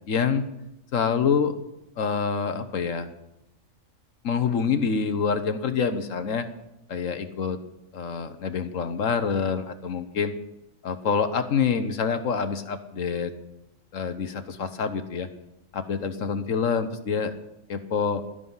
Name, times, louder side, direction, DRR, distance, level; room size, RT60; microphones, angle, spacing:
voice 1, 0.1-0.5 0.9-1.5 2.0-3.1 4.2-6.5 6.9-7.6 7.9-10.3 10.8-13.3 13.9-15.3 15.7-17.3 17.7-18.2, left 6 dB, 75° left, 9 dB, 1.4 m, -26 dB
16.5 x 12.5 x 5.6 m, 0.90 s
omnidirectional pair, 1.4 m